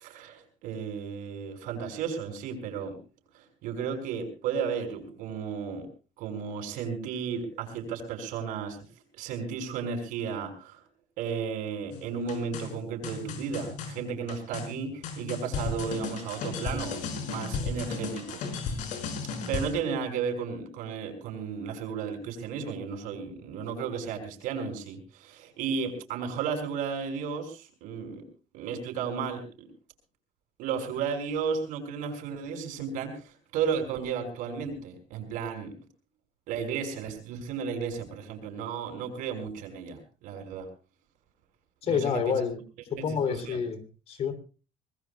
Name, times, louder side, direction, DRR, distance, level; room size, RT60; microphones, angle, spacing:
voice 1, 0.0-3.0 3.3-5.9 6.2-8.8 9.2-10.8 11.2-18.9 19.5-28.2 28.5-29.7 30.6-35.7 36.5-40.7 41.8-42.4 43.0-43.6, right 6 dB, 85° right, 5 dB, 5.9 m, -34 dB
sound 1, 11.9-19.7, left 4 dB, 70° left, 5.6 m, -35 dB
voice 2, 41.8-42.6 42.9-44.3, left 7 dB, 50° left, 11 dB, 3.1 m, -28 dB
25.5 x 20.0 x 2.3 m, 0.35 s
cardioid pair, 145°, 13 cm